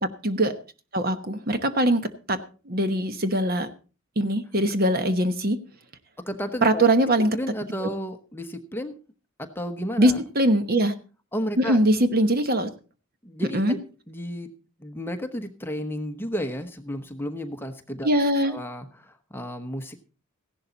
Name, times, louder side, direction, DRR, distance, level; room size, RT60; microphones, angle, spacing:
voice 1, 0.2-0.6 0.9-2.4 2.7-3.7 4.2-5.6 6.6-7.4 7.8-7.9 10.0-10.9 11.6-12.7 13.5-13.7 18.0-18.5, right 1 dB, 45° right, 10 dB, 1.1 m, -22 dB
voice 2, 6.2-6.8 7.3-8.9 9.4-10.2 11.3-11.8 13.2-13.8 14.1-14.5 14.8-18.1 18.4-20.0, equal, 10° left, 6 dB, 1.0 m, -32 dB
15.5 x 11.5 x 4.0 m, 0.35 s
head